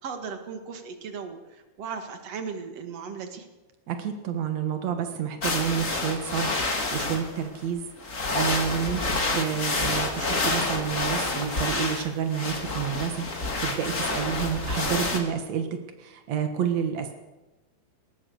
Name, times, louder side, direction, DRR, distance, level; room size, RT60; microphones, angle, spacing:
voice 1, 0.0-3.5, right 5 dB, 50° right, 6 dB, 2.0 m, -37 dB
voice 2, 3.9-15.7 16.0-17.1, right 8 dB, 90° right, 6 dB, 1.5 m, -29 dB
sound 1, 5.4-7.4 8.0-15.2, left 2 dB, 30° left, 1.5 m, -28 dB
21.5 x 19.5 x 6.6 m, 1.1 s
omnidirectional pair, 5.6 m